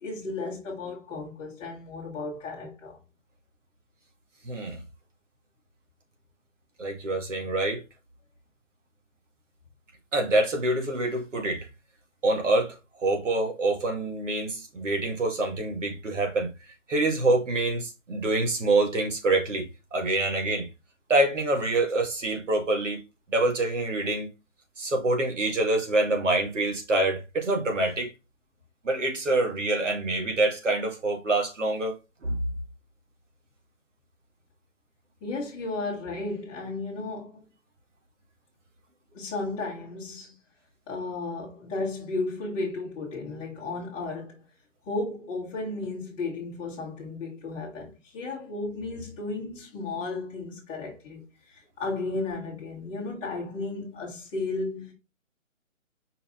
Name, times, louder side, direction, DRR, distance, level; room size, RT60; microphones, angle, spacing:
voice 1, 0.0-3.0 35.2-37.4 39.1-40.4 40.9-44.4 44.9-54.9, left 3 dB, 15° left, 1.9 m, -34 dB
voice 2, 4.4-4.8 6.8-7.8 10.1-11.7 12.2-16.5 16.9-20.7 21.1-23.0 23.3-24.3 24.8-28.1 28.8-31.9 32.2-32.4, right 2 dB, 65° right, 2.2 m, -26 dB
5.4 x 4.4 x 3.9 m
figure-of-eight pair, 155°, 40 cm